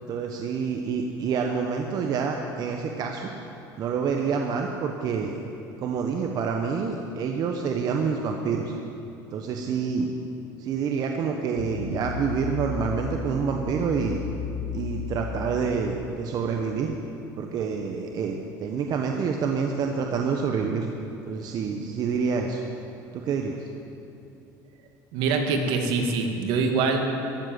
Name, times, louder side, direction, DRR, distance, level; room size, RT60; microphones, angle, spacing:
voice 1, 0.1-3.3 3.8-5.4 5.8-8.7 9.3-10.1 10.6-14.2 14.7-16.9 17.4-20.9 21.3-22.6 23.1-23.7, right 6 dB, 50° right, 3 dB, 1.1 m, -27 dB
sound 1, 11.6-16.7, left 7 dB, 70° left, 1.5 m, -35 dB
voice 2, 25.1-27.0, right 4 dB, 70° right, 3 dB, 2.0 m, -24 dB
14.5 x 7.6 x 9.4 m, 2.7 s
supercardioid pair, 110°, 9 cm